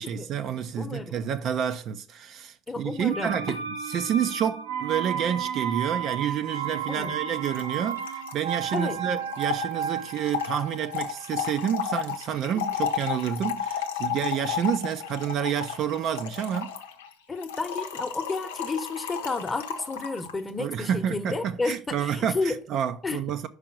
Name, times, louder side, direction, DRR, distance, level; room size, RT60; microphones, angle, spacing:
voice 1, 0.0-16.7 20.6-23.5, right 9 dB, 45° right, 0.5 m, -29 dB
voice 2, 0.8-1.1 2.7-3.3 6.9-7.1 8.7-9.0 17.3-22.5 23.0-23.2, left 3 dB, 20° left, 0.9 m, -31 dB
sound 1, 3.1-12.8 13.1-13.2, right 7 dB, 70° right, 0.8 m, -33 dB
Trickle dribble / Fill (with liquid), 6.7-6.8 7.0-7.1 7.3-20.4, left 8 dB, 70° left, 0.7 m, -33 dB
5.4 x 4.8 x 6.2 m
figure-of-eight pair, 65°, 0 cm